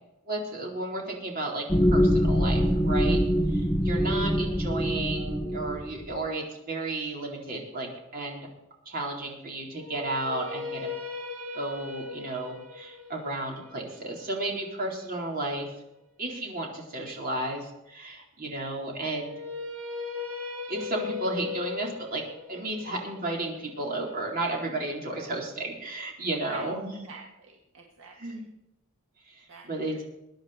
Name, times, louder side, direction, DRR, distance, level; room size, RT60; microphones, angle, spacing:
voice 1, 0.3-3.2 3.5-7.9 8.1-8.4 8.9-10.9 11.5-15.7 16.2-19.4 20.7-22.2 22.5-27.1 28.2-28.5 29.3-30.0, right 2 dB, 45° right, -1 dB, 4.0 m, -33 dB
sound 1, 1.7-6.2, equal, 10° left, 0.7 m, -24 dB
sound 2, 9.7-15.9 19.1-25.2, left 4 dB, 85° right, 2.0 m, -39 dB
voice 2, 27.0-28.2 29.5-30.0, right 4 dB, 65° right, -1 dB, 2.0 m, -47 dB
22.0 x 10.0 x 4.4 m, 0.89 s
head